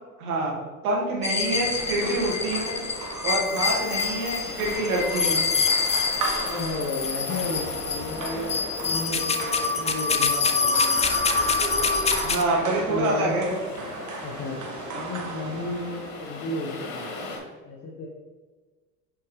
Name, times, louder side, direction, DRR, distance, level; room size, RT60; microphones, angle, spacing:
voice 1, 0.2-0.5 0.8-2.8 3.2-5.5 12.2-13.5, right 2 dB, 85° right, -3 dB, 1.9 m, -26 dB
sound 1, 1.2-12.4, left 5 dB, 15° left, 0.4 m, -26 dB
sound 2, 1.4-17.4, left 3 dB, 80° left, 1.8 m, -41 dB
sound 3, 1.4-16.3, right 3 dB, 40° right, 1.5 m, -36 dB
voice 2, 6.4-11.2 12.9-13.4 14.2-17.1 17.6-18.1, left 2 dB, 35° left, -2 dB, 1.3 m, -33 dB
7.0 x 4.7 x 3.2 m, 1.4 s
hypercardioid pair, 80°, 43 cm